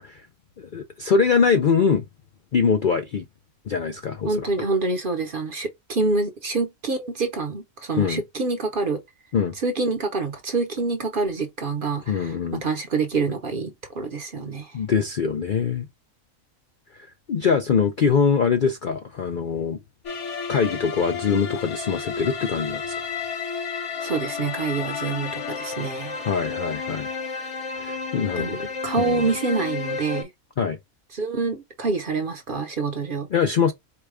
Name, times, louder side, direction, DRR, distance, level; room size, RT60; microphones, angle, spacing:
voice 1, 0.6-2.1 2.5-3.2 3.7-4.5 8.0-8.2 9.3-9.5 12.1-12.6 14.7-15.9 17.3-19.8 20.5-22.9 26.2-27.1 27.8-28.6 29.0-29.2 30.6-30.8 33.3-33.7, left 6 dB, 55° left, 0.5 m, -23 dB
voice 2, 4.3-9.0 9.6-14.8 24.0-26.2 28.4-30.3 31.1-33.3, right 4 dB, 45° right, 0.8 m, -26 dB
sound 1, 20.0-30.2, left 5 dB, 85° left, 2.6 m, -32 dB
4.7 x 2.2 x 4.8 m
omnidirectional pair, 1.4 m